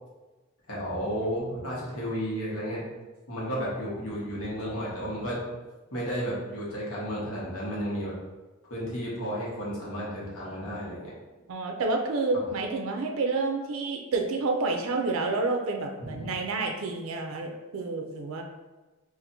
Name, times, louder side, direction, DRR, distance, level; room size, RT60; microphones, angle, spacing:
voice 1, 0.7-2.8 3.3-5.4 5.9-8.1 8.7-11.1 16.0-16.3, equal, 90° left, -5 dB, 1.2 m, -32 dB
voice 2, 11.5-18.4, right 3 dB, 70° right, 3 dB, 0.4 m, -29 dB
4.2 x 2.5 x 2.6 m, 1.2 s
head